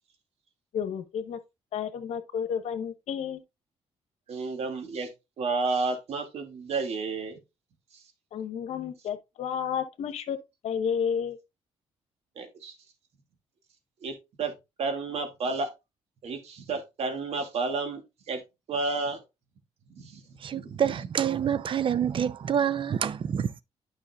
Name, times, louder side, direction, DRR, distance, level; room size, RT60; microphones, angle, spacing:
voice 1, 0.7-1.4 1.7-3.4 8.3-10.4 10.6-11.4, left 7 dB, 75° left, 1.1 m, -31 dB
voice 2, 4.3-5.1 5.4-7.4 12.4-12.7 14.0-14.5 14.8-15.7 16.2-18.4 18.7-19.2 20.0-20.2 20.5-21.0, right 3 dB, 65° right, 2.2 m, -31 dB
voice 3, 20.4-23.6, right 8 dB, 50° right, 0.6 m, -27 dB
9.9 x 5.7 x 2.3 m
cardioid pair, 80°, 11 cm